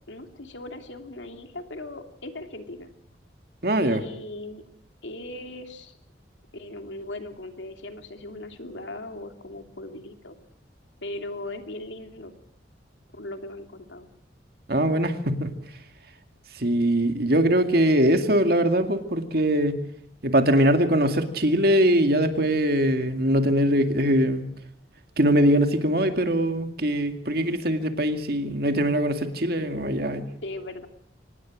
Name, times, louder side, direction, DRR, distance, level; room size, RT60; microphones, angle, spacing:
voice 1, 0.1-2.9 3.8-4.6 5.0-6.0 6.5-10.3 11.0-12.3 13.1-14.1 30.4-30.9, left 1 dB, 85° left, 6 dB, 2.8 m, -38 dB
voice 2, 3.6-4.0 14.7-15.5 16.6-19.8 20.2-24.4 25.2-30.3, right 1 dB, 55° right, 7 dB, 2.2 m, -22 dB
25.0 x 19.5 x 6.3 m, 0.68 s
head